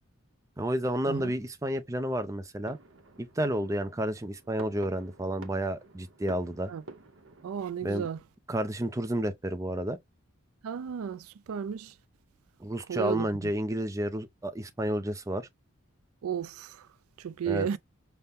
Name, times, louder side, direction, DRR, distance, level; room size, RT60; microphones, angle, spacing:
voice 1, 0.6-2.8 3.2-6.7 7.8-8.1 8.5-10.0 12.6-15.5 17.4-17.7, right 1 dB, 15° right, 0.4 m, -31 dB
sound 1, 2.6-7.6, right 3 dB, 65° right, 0.8 m, -50 dB
voice 2, 7.4-8.2 10.6-11.9 12.9-13.5 16.2-16.8 17.2-17.8, right 8 dB, 85° right, 0.4 m, -33 dB
5.6 x 2.1 x 3.4 m
head